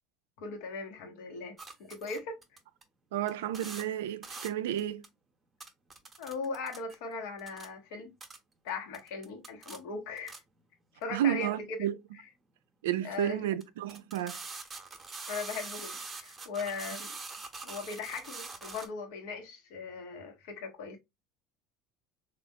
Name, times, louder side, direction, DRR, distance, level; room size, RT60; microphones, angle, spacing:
voice 1, 0.4-2.4 6.2-8.1 8.6-10.4 10.9-11.8 13.0-13.5 15.3-17.1 17.6-21.0, left 4 dB, 70° left, 1.0 m, -39 dB
sound 1, 1.6-2.8 3.3-3.4 3.5-3.8 4.2-4.5 4.8-5.1 5.6-7.0 7.4-7.7 8.2-8.4 8.9-10.4 11.0-11.1 12.9-13.0 13.6-13.7 13.9-18.9, right 4 dB, 25° right, 0.8 m, -44 dB
voice 2, 3.1-5.0 11.1-11.9 12.8-14.4, right 11 dB, 80° right, 0.3 m, -31 dB
3.5 x 2.4 x 2.7 m
hypercardioid pair, 80°, 0 cm